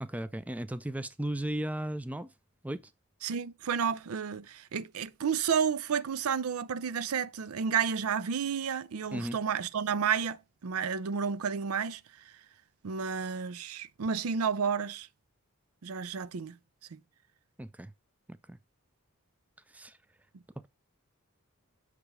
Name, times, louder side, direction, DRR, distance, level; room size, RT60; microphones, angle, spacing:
voice 1, 0.0-2.3 2.6-2.8 9.1-9.4 17.6-17.9 18.3-18.6 19.7-20.0, right 1 dB, 5° right, 0.4 m, -35 dB
voice 2, 3.2-12.4 12.8-15.1 15.8-16.6 16.9-17.0, right 6 dB, 75° right, 0.5 m, -31 dB
6.6 x 5.0 x 4.8 m
head